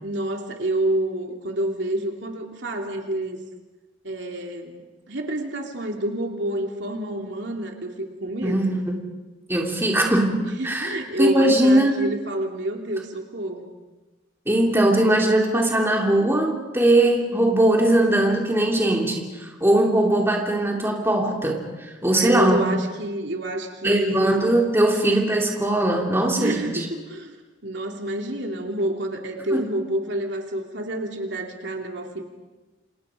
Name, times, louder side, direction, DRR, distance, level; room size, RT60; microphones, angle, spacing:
voice 1, 0.0-3.4 4.0-8.6 10.4-13.7 22.1-24.5 26.4-27.3 27.6-32.2, right 1 dB, 70° right, 2 dB, 3.0 m, -28 dB
voice 2, 8.4-9.0 9.5-11.9 14.5-21.6 22.0-22.6 23.8-26.9 29.5-29.6, right 1 dB, 10° right, 0 dB, 3.0 m, -20 dB
28.5 x 28.0 x 5.1 m, 1.2 s
head